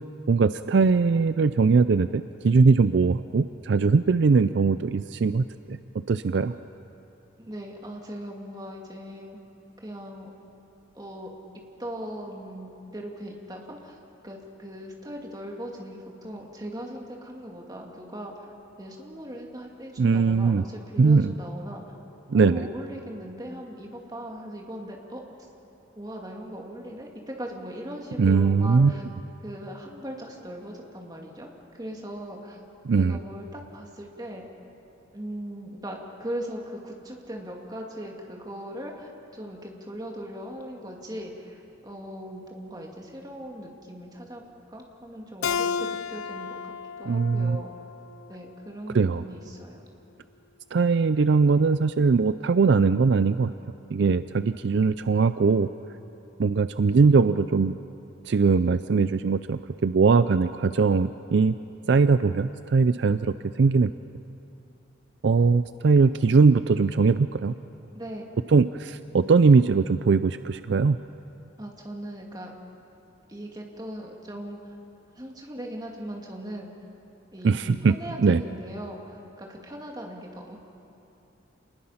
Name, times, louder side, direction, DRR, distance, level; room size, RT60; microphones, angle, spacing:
voice 1, 0.3-5.8 6.1-6.5 20.0-20.6 21.0-21.3 22.3-22.7 28.2-28.9 32.8-33.2 47.1-47.6 48.9-49.2 50.7-53.5 53.9-55.7 56.4-57.8 58.3-61.5 61.9-63.9 65.2-67.5 68.5-71.0 77.4-77.9 78.2-78.4, right 4 dB, 60° right, 12 dB, 0.4 m, -21 dB
voice 2, 7.4-9.4 9.8-10.3 10.9-11.3 11.8-14.0 14.2-18.5 18.8-21.8 22.3-25.2 26.0-29.0 29.4-32.6 33.0-34.4 35.1-44.4 44.7-47.7 48.3-49.9 67.9-68.3 71.6-72.5 73.3-74.6 75.2-76.7 77.3-80.6, equal, 20° right, 0 dB, 2.3 m, -39 dB
Keyboard (musical), 45.4-48.7, left 6 dB, 85° left, 0.5 m, -32 dB
27.5 x 20.0 x 5.7 m, 2.8 s
head